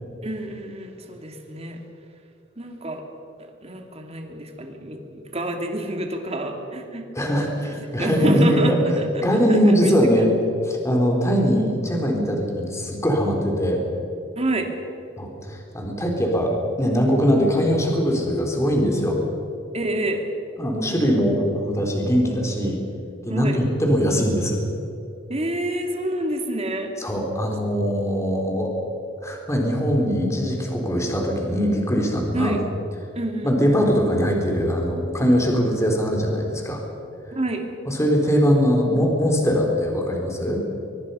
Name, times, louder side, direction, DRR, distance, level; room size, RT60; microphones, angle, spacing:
voice 1, 0.2-1.8 2.6-3.0 3.6-7.0 7.3-9.9 14.4-14.7 19.7-20.2 23.3-23.6 25.3-26.9 32.3-32.6 33.1-33.5 37.3-37.7, right 1 dB, 35° right, 3 dB, 2.8 m, -28 dB
voice 2, 7.2-8.7 9.2-10.3 10.6-13.9 15.2-19.2 20.6-22.8 23.2-24.6 27.0-28.7 29.2-32.6 33.4-36.8 37.9-40.6, equal, 15° left, 1 dB, 3.8 m, -21 dB
24.0 x 22.5 x 5.7 m, 2.8 s
head